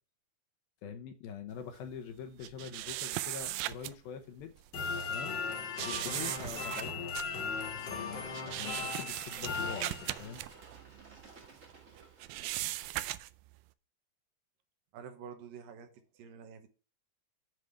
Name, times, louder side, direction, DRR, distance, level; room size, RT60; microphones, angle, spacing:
voice 1, 0.8-4.5 5.1-5.4 5.9-7.0 7.7-10.4, left 7 dB, 75° left, 6 dB, 2.6 m, -44 dB
sound 1, 2.4-3.9 4.4-4.6 5.8-11.7 12.0-13.5, right 16 dB, 85° right, 2.0 m, -38 dB
sound 2, 4.7-10.5, left 5 dB, 50° left, 1.4 m, -38 dB
Bird / Water, 6.2-12.9, right 3 dB, 55° right, 0.8 m, -55 dB
voice 2, 14.9-16.7, right 7 dB, 70° right, 8 dB, 2.5 m, -48 dB
7.8 x 4.9 x 6.9 m, 0.33 s
omnidirectional pair, 4.6 m